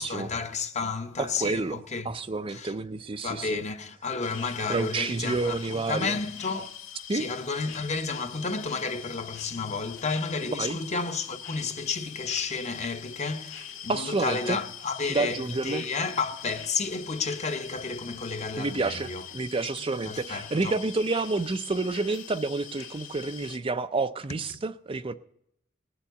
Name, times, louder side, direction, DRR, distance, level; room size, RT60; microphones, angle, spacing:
voice 1, 0.0-2.1 2.5-2.7 3.2-6.7 7.1-19.2 20.1-20.8, left 4 dB, 35° left, 0.9 m, -32 dB
voice 2, 1.2-3.6 4.7-6.1 7.1-7.3 10.5-10.8 13.9-14.6 15.1-15.8 18.6-25.1, right 3 dB, 25° right, 0.5 m, -29 dB
sound 1, 4.2-23.6, left 9 dB, 80° left, 1.6 m, -43 dB
19.5 x 7.1 x 8.0 m
head